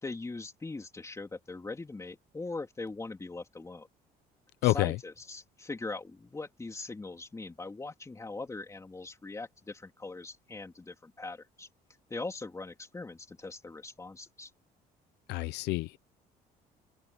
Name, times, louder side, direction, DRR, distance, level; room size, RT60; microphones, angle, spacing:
voice 1, 0.0-3.9 4.6-11.7 12.1-14.5, left 3 dB, 15° left, 3.3 m, -41 dB
voice 2, 4.6-5.0 15.3-16.0, left 19 dB, 85° left, 0.6 m, -28 dB
cardioid pair, 110°, 17 cm